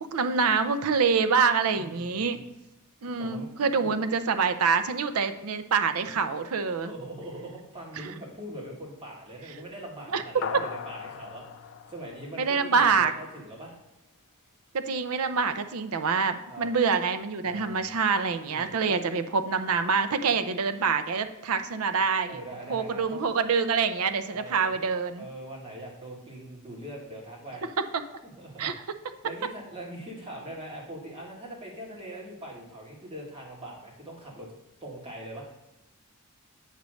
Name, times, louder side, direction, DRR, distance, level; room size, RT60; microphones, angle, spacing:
voice 1, 0.1-2.4 3.0-6.9 8.0-8.1 10.1-10.2 12.4-13.1 14.7-22.4 22.7-25.2 28.6-28.7, right 5 dB, 75° right, 10 dB, 0.5 m, -26 dB
voice 2, 1.7-2.4 3.2-3.5 3.8-4.0 6.9-13.7 16.5-16.7 17.4-18.0 18.5-19.0 20.3-20.4 22.3-23.2 24.3-24.7 25.2-27.7 28.2-28.7 29.2-34.5 34.8-35.5, right 1 dB, 25° right, -3 dB, 1.9 m, -42 dB
sound 1, 10.4-13.1, left 7 dB, 55° left, 0.4 m, -39 dB
8.2 x 3.1 x 6.3 m, 0.98 s
head